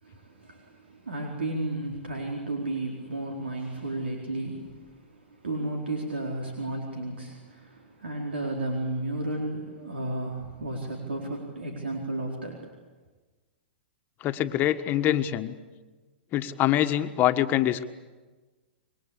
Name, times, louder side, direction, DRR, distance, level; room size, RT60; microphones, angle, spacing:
voice 1, 0.0-12.7, right 2 dB, 90° right, 1 dB, 4.3 m, -33 dB
voice 2, 14.2-15.5 16.3-17.8, left 12 dB, 35° left, 10 dB, 1.5 m, -24 dB
26.5 x 23.0 x 8.5 m, 1.3 s
hypercardioid pair, 120°, 6 cm